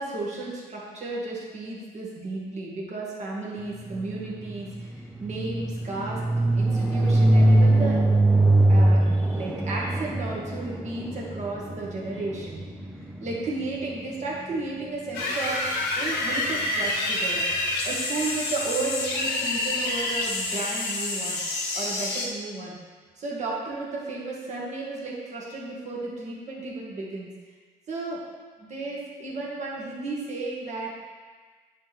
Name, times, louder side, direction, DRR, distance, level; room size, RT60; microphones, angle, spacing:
voice 1, 0.0-6.2 6.5-8.0 8.7-12.6 13.2-15.6 16.0-17.5 17.8-21.4 21.7-22.8 23.2-27.3 27.9-28.2 28.6-31.0, right 3 dB, 45° right, -4 dB, 2.0 m, -33 dB
sound 1, 3.8-13.8, right 1 dB, 5° right, 0.5 m, -22 dB
sound 2, 15.1-22.3, left 2 dB, 80° left, 1.1 m, -28 dB
9.7 x 4.5 x 3.6 m, 1.5 s
cardioid pair, 110°, 17 cm